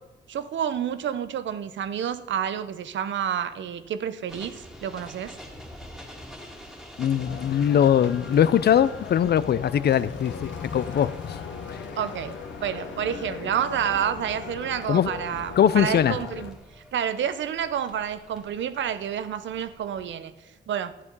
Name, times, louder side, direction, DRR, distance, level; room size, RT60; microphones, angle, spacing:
voice 1, 0.3-5.3 12.0-12.3 12.6-16.5 16.9-20.3 20.7-20.9, right 9 dB, 85° right, 13 dB, 0.7 m, -29 dB
sound 1, 4.3-20.1, left 1 dB, ahead, 1.9 m, -47 dB
voice 2, 7.0-11.4 11.7-11.8 14.9-15.1 15.6-16.2, left 9 dB, 60° left, 16 dB, 0.5 m, -21 dB
sound 2, 7.2-16.5, left 6 dB, 90° left, 1.0 m, -38 dB
12.5 x 8.7 x 5.4 m, 1.1 s
wide cardioid pair, 115°, 19 cm